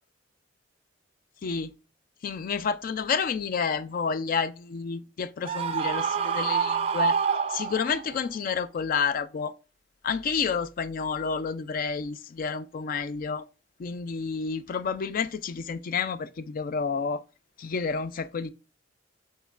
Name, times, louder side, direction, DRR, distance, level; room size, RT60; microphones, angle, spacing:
voice 1, 2.2-7.2 7.5-9.5 10.0-13.4 13.8-17.2 17.6-18.5, left 5 dB, 45° left, 0.4 m, -30 dB
Screaming, 5.4-8.1, right 6 dB, 30° right, 0.4 m, -27 dB
7.2 x 3.0 x 2.4 m
head